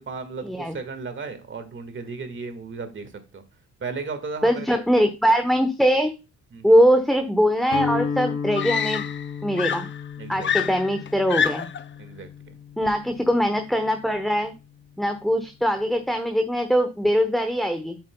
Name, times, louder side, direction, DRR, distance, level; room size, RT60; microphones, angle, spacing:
voice 1, 0.0-3.4 3.8-4.8 6.5-6.7 10.2-10.5 12.0-12.3, right 4 dB, 40° right, 8 dB, 1.7 m, -35 dB
voice 2, 4.4-6.1 6.6-9.0 9.4-9.9 10.3-11.7 12.8-14.5 15.0-18.0, equal, ahead, 7 dB, 0.8 m, -21 dB
Guitar, 7.7-13.7, left 6 dB, 75° left, 3.0 m, -33 dB
Screaming, 7.7-7.8 8.5-9.3 9.6-11.9 12.9-13.1, left 8 dB, 40° left, 0.5 m, -27 dB
7.9 x 7.3 x 2.2 m, 0.29 s
cardioid pair, 90°, 30 cm